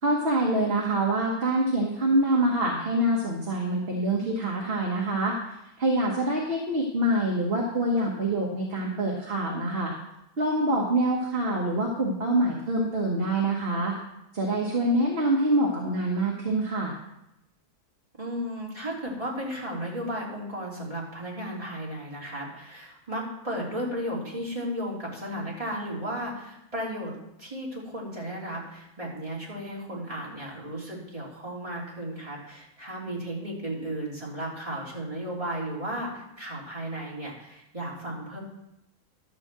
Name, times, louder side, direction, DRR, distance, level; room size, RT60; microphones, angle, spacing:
voice 1, 0.0-9.9 10.4-13.9 14.3-17.0, right 1 dB, 40° right, -2 dB, 1.6 m, -25 dB
voice 2, 18.2-27.1 27.4-38.4, equal, 20° right, -5 dB, 3.2 m, -34 dB
11.5 x 5.6 x 7.4 m, 0.85 s
omnidirectional pair, 1.6 m